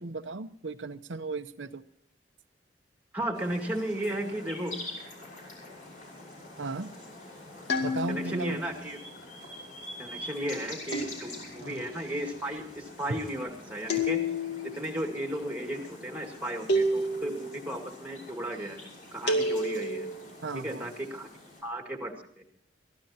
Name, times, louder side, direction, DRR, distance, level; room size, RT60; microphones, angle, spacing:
voice 1, 0.0-1.8 6.6-6.9 7.8-8.6 11.6-11.8 20.4-20.9, right 3 dB, 85° right, 7 dB, 0.8 m, -36 dB
voice 2, 3.1-4.8 8.1-9.0 10.0-14.2 14.7-20.1 20.5-21.3 21.6-22.4, right 1 dB, 10° right, 4 dB, 2.1 m, -35 dB
sound 1, 3.3-21.6, left 2 dB, 45° left, 6.3 m, -46 dB
sound 2, 7.7-8.5 10.9-11.7 13.9-14.7 16.7-17.5 19.3-20.1, left 1 dB, 65° left, 2.4 m, -29 dB
23.5 x 15.5 x 2.8 m, 0.65 s
head